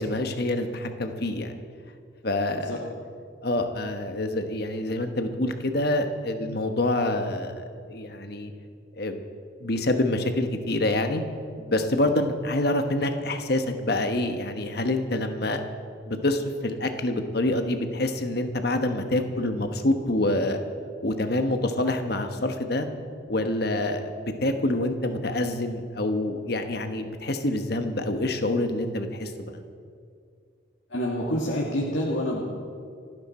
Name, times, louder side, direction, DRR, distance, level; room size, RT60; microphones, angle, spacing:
voice 1, 0.0-1.6 2.2-2.8 3.4-8.5 9.0-9.2 9.6-11.2 11.6-15.6 16.1-20.6 21.0-22.9 23.3-29.6, left 1 dB, 55° left, 6 dB, 1.2 m, -26 dB
voice 2, 30.9-32.4, equal, 75° left, -4 dB, 2.0 m, -27 dB
28.5 x 9.9 x 4.4 m, 2.3 s
head